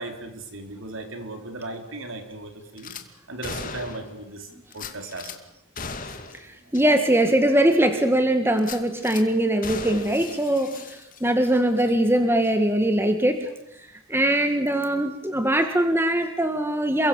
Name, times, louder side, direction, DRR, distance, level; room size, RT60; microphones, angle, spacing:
voice 1, 0.0-2.9 3.3-5.3, right 2 dB, 60° right, 5 dB, 4.6 m, -37 dB
Gunshot gunfire / Glass, 2.8-3.0 3.4-4.2 4.7-5.4 5.8-6.4 6.7-6.8 7.3-7.4 8.6-9.2 9.6-11.4 11.7-11.9, left 4 dB, 40° left, 2.5 m, -37 dB
voice 2, 6.7-13.5 14.1-17.1, right 1 dB, 10° right, 7 dB, 1.7 m, -21 dB
28.5 x 23.5 x 7.2 m, 0.80 s
head